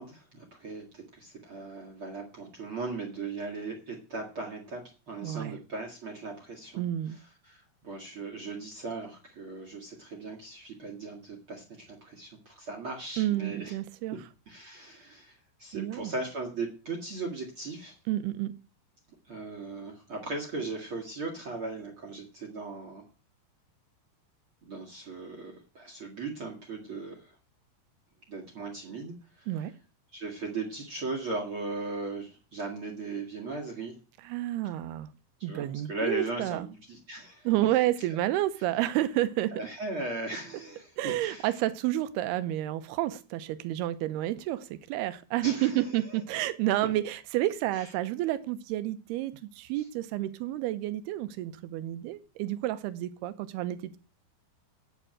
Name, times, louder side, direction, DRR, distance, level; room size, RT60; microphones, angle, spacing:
voice 1, 0.0-6.8 7.1-13.8 14.5-18.0 19.3-23.0 24.6-27.4 28.3-29.5 30.1-34.0 35.4-37.5 39.5-41.6 45.4-46.2 47.7-47.9 49.8-49.9, right 3 dB, 45° right, 4 dB, 1.8 m, -38 dB
voice 2, 5.2-5.6 6.8-7.2 13.2-14.2 15.7-16.1 18.1-18.5 29.5-29.7 34.2-35.1 35.4-36.7 37.5-39.5 41.0-54.0, right 14 dB, 75° right, 13 dB, 2.6 m, -30 dB
9.3 x 6.9 x 8.7 m, 0.36 s
omnidirectional pair, 5.1 m